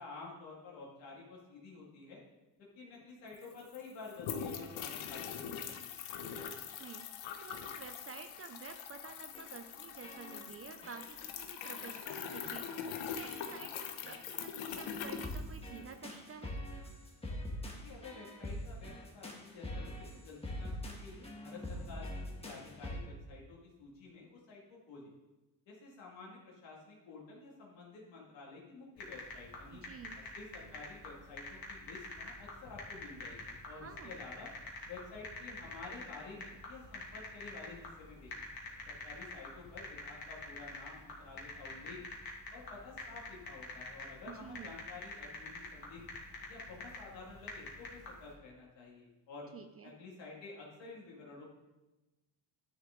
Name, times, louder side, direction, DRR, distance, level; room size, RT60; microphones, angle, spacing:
voice 1, 0.0-2.2 2.7-6.0 17.7-22.1 22.4-25.1 25.7-29.8 30.3-34.5 34.9-38.3 38.9-42.0 42.5-46.0 46.5-49.5 49.8-51.4, left 3 dB, 70° left, -3 dB, 2.2 m, -51 dB
sound 1, 3.0-3.1 3.3-16.1, left 8 dB, 90° left, 1.0 m, -43 dB
voice 2, 6.5-7.1 7.4-16.5 29.7-30.2 33.8-34.1 44.3-44.7 49.5-49.9, right 6 dB, 35° right, 8 dB, 0.5 m, -50 dB
sound 2, 9.3-9.7 10.0-10.6 10.8-11.3 11.6-12.1 12.4-12.7 13.2-13.7 14.0-14.3 14.8-23.0, left 1 dB, 15° left, 1.5 m, -44 dB
sound 3, 29.0-48.3, left 2 dB, 50° left, 2.4 m, -47 dB
11.0 x 7.0 x 3.8 m, 1.1 s
cardioid pair, 125°, 45 cm